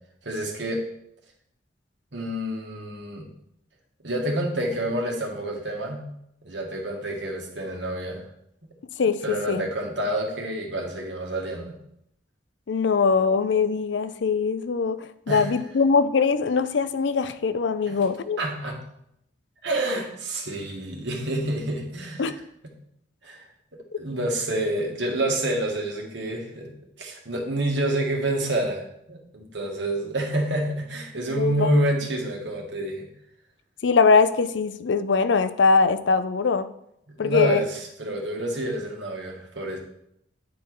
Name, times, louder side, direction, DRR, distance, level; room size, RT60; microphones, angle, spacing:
voice 1, 0.2-0.8 2.1-3.3 4.0-6.0 6.4-8.3 9.2-11.7 15.3-15.5 18.4-18.8 19.6-22.4 23.2-23.4 24.0-26.7 27.0-33.1 37.1-39.8, right 1 dB, 70° right, 0 dB, 1.7 m, -28 dB
voice 2, 9.0-9.6 12.7-18.4 22.2-22.3 23.9-24.0 31.4-31.8 33.8-36.7 37.2-37.6, left 5 dB, 70° left, 14 dB, 0.5 m, -22 dB
9.4 x 4.6 x 4.6 m, 0.75 s
head